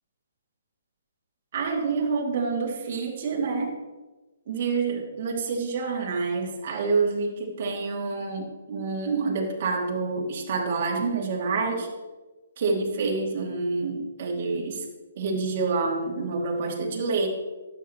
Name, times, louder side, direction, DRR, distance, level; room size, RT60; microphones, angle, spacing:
voice 1, 1.5-3.7 4.5-11.9 12.6-14.8 15.1-17.3, right 4 dB, 45° right, -1 dB, 2.8 m, -27 dB
13.0 x 9.3 x 3.2 m, 1.2 s
hypercardioid pair, 150°, 0 cm